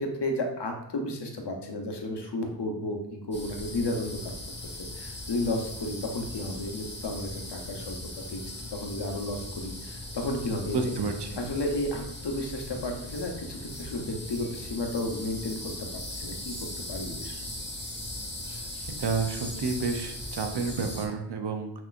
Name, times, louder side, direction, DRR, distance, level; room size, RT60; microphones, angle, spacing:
voice 1, 0.0-4.3 4.6-8.4 8.7-10.8 11.4-17.5, left 1 dB, 70° left, 3 dB, 0.9 m, -33 dB
sound 1, 3.3-21.1, left 1 dB, 25° left, 1.2 m, -39 dB
voice 2, 10.7-11.4 18.9-21.7, right 4 dB, 70° right, 5 dB, 0.7 m, -30 dB
5.9 x 2.9 x 2.5 m, 0.77 s
cardioid pair, 45°, 43 cm